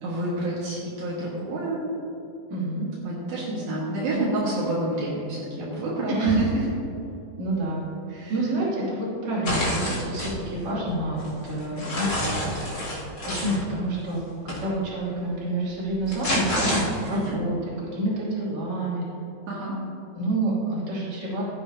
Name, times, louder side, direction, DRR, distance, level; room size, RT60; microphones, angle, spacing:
voice 1, 0.0-1.8 3.0-6.4 8.1-8.3 17.1-17.4 19.5-19.7, right 1 dB, 75° right, -7 dB, 3.3 m, -29 dB
voice 2, 2.5-2.9 6.1-6.4 7.4-7.8 8.3-12.6 12.9-17.6 17.9-19.0 20.1-21.4, right 2 dB, 50° right, -7 dB, 3.8 m, -28 dB
sound 1, 9.4-10.3 10.9-13.6 14.5-14.6 15.8-17.3, left 1 dB, 30° left, 2.7 m, -28 dB
15.5 x 10.0 x 2.8 m, 2.9 s
omnidirectional pair, 4.4 m